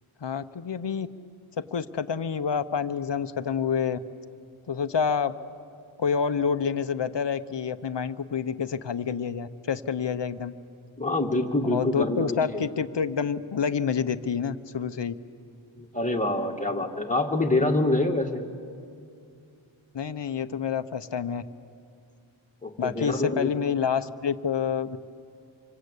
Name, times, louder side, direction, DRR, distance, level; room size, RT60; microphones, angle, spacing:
voice 1, 0.2-1.1 1.6-4.0 4.7-5.3 6.0-10.5 11.6-15.1 19.9-21.4 22.8-25.0, left 6 dB, 55° left, 11 dB, 1.0 m, -28 dB
voice 2, 11.0-12.6 15.8-18.4 22.6-23.5, left 2 dB, 15° left, 2 dB, 2.2 m, -26 dB
28.0 x 25.0 x 8.4 m, 2.4 s
wide cardioid pair, 70°, 50 cm